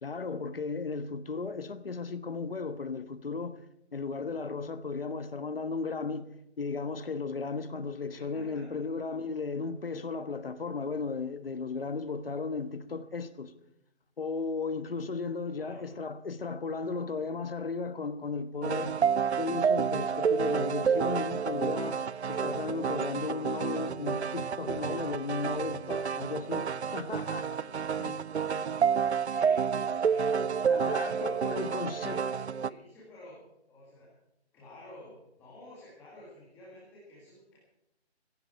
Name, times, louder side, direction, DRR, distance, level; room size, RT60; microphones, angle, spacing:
voice 1, 0.0-3.6 3.9-13.5 14.2-19.0 19.4-22.0 22.3-27.6 28.0-28.2 28.6-28.7 30.7-32.2, left 4 dB, 55° left, 1.3 m, -35 dB
voice 2, 8.1-8.8 15.5-15.9 29.1-34.1 34.5-37.6, left 1 dB, 5° left, 2.0 m, -51 dB
sound 1, 18.6-32.7, right 6 dB, 70° right, 0.6 m, -29 dB
17.0 x 16.0 x 4.5 m
figure-of-eight pair, 170°, 34 cm